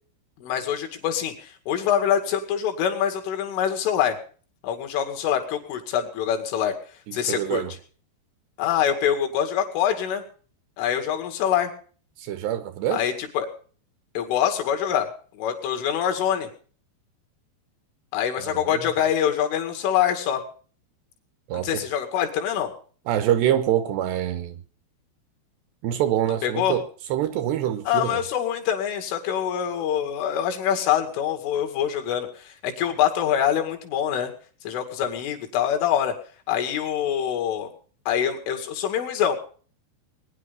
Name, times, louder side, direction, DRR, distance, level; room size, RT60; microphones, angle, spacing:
voice 1, 0.4-4.2 4.6-6.7 7.1-7.6 8.6-10.2 10.8-11.7 12.9-13.5 14.2-15.1 15.3-16.5 18.1-20.4 21.5-22.7 26.3-26.8 27.9-34.3 34.6-36.1 36.5-37.7 38.1-39.4, left 9 dB, 80° left, 4.7 m, -25 dB
voice 2, 7.1-7.7 12.2-13.1 18.4-18.9 21.5-21.7 23.1-24.6 25.8-26.8 27.1-28.2, right 11 dB, 75° right, 2.7 m, -25 dB
21.0 x 10.5 x 5.3 m
omnidirectional pair, 5.5 m